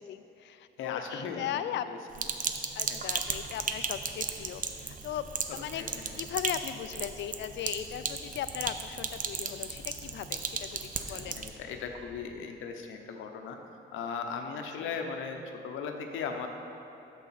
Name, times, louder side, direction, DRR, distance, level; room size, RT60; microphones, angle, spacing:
voice 1, 0.0-1.9 2.7-5.8 6.2-11.4 14.5-15.0, left 10 dB, 65° left, 12 dB, 0.4 m, -38 dB
voice 2, 0.8-1.5 1.9-2.0 2.9-3.0 5.8-6.1 11.1-13.6 13.9-16.5, left 5 dB, 85° left, 4 dB, 0.8 m, -37 dB
Sink (filling or washing), 2.1-11.5, right 6 dB, 40° right, 0.6 m, -36 dB
sound 1, 3.0-12.3, left 3 dB, 40° left, 0.8 m, -54 dB
8.3 x 7.0 x 4.2 m, 2.8 s
cardioid pair, 90°, 20 cm